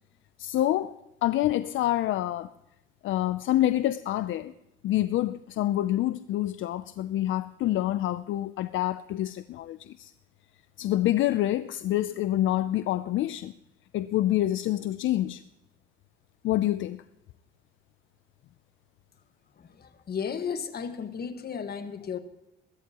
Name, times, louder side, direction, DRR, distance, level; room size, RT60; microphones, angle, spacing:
voice 1, 0.4-2.5 3.0-4.5 4.8-10.1 10.8-13.5 13.9-15.4 16.4-17.0, left 14 dB, 75° left, 0.5 m, -27 dB
voice 2, 19.6-22.2, left 6 dB, 55° left, 1.5 m, -34 dB
21.5 x 13.0 x 2.9 m
cardioid pair, 90°, 20 cm